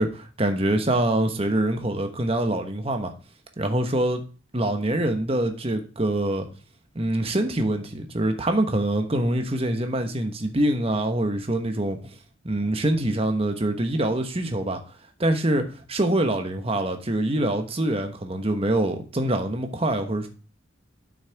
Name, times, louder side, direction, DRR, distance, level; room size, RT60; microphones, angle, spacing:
voice 1, 0.0-3.1 3.6-4.2 4.5-6.5 6.9-12.0 12.4-14.8 15.2-20.3, right 1 dB, 30° right, 1.1 m, -25 dB
8.4 x 6.4 x 3.4 m
head